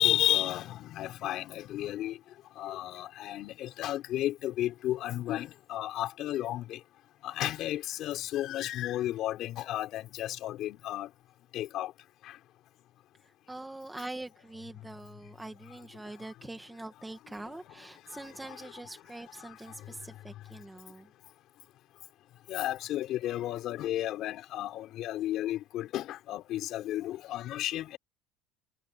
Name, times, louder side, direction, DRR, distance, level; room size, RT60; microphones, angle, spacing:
voice 1, 0.0-2.2 2.6-6.8 7.2-11.1 11.5-11.9 18.5-18.6 22.5-28.0, left 13 dB, 45° left, 5.7 m, -32 dB
voice 2, 13.5-21.1, right 2 dB, 5° right, 1.6 m, -44 dB
cardioid pair, 170°, 0 cm